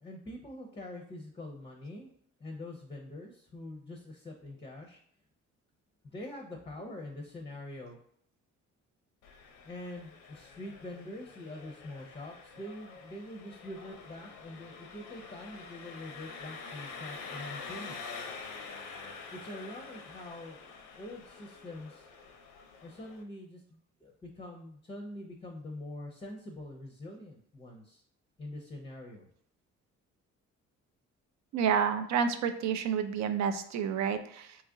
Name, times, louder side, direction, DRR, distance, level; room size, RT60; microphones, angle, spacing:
voice 1, 0.0-2.1 2.4-5.0 6.0-8.0 9.6-18.2 19.3-22.1 22.8-28.0 28.4-29.3, left 1 dB, 20° left, 1 dB, 0.5 m, -44 dB
Engine, 9.2-23.2, left 4 dB, 90° left, 0.6 m, -47 dB
voice 2, 31.5-34.6, right 7 dB, 65° right, 10 dB, 0.4 m, -29 dB
3.0 x 2.4 x 3.7 m, 0.65 s
cardioid pair, 90°, 30 cm